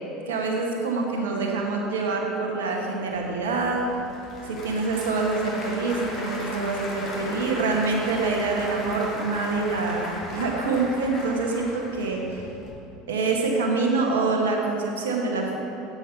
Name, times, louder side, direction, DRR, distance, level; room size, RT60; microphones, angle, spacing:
voice 1, 0.3-3.9 4.4-12.4 13.1-15.6, right 3 dB, 85° right, 0 dB, 1.0 m, -26 dB
Applause / Crowd, 3.1-12.7, left 1 dB, 50° left, 2.0 m, -37 dB
7.1 x 7.1 x 4.4 m, 2.9 s
hypercardioid pair, 80°, 0 cm